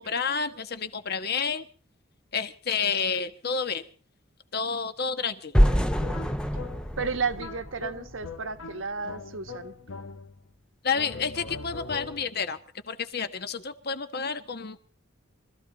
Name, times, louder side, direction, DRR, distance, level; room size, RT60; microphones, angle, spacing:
voice 1, 0.0-1.7 2.3-3.9 4.5-5.6 10.8-12.6 12.9-14.8, left 5 dB, 50° left, 1.3 m, -30 dB
sound 1, 5.5-8.5, equal, 5° left, 0.8 m, -25 dB
sound 2, 5.6-10.5 10.9-12.5, left 4 dB, 80° left, 1.3 m, -41 dB
voice 2, 7.0-9.7, right 5 dB, 75° right, 1.4 m, -32 dB
24.5 x 14.5 x 4.0 m
head